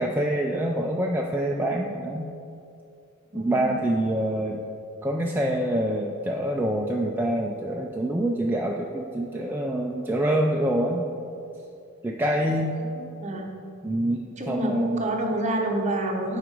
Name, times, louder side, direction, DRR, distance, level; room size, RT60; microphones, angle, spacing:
voice 1, 0.0-2.3 3.3-4.6 5.0-11.1 12.0-12.8 13.8-15.1, right 1 dB, 10° right, -1 dB, 0.4 m, -26 dB
voice 2, 3.3-3.9 13.0-13.5 14.4-16.4, right 1 dB, 35° right, 1 dB, 0.9 m, -28 dB
7.8 x 4.8 x 5.2 m, 2.6 s
head